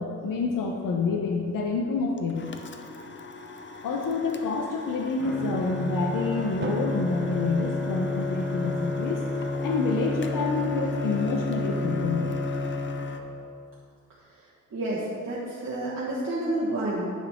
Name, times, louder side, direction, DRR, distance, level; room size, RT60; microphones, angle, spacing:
voice 1, 0.0-2.5 3.8-9.2 9.5-12.3, left 4 dB, 75° left, 1 dB, 0.7 m, -28 dB
sound 1, 2.2-13.2, left 4 dB, 35° left, 0.5 m, -43 dB
Bowed string instrument, 5.2-13.5, left 1 dB, ahead, 1.1 m, -30 dB
Drum, 6.6-8.7, right 3 dB, 35° right, 0.6 m, -39 dB
voice 2, 14.7-17.1, right 1 dB, 55° right, -8 dB, 1.4 m, -29 dB
10.5 x 5.9 x 3.6 m, 2.4 s
wide cardioid pair, 125°, 33 cm